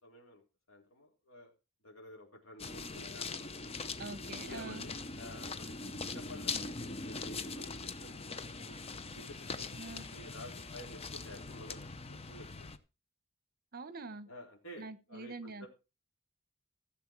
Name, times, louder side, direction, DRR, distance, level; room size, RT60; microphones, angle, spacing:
voice 1, 0.0-0.4 0.7-1.5 1.8-3.4 4.3-7.7 8.0-8.8 9.1-12.7 14.3-15.7, left 1 dB, 70° left, 0 dB, 4.1 m, -52 dB
sound 1, 2.6-12.8, left 4 dB, 30° left, 0.8 m, -42 dB
voice 2, 4.0-4.9 9.8-10.1 13.7-14.3 14.8-15.7, right 3 dB, 45° right, 14 dB, 1.1 m, -45 dB
15.5 x 7.3 x 4.6 m, 0.30 s
head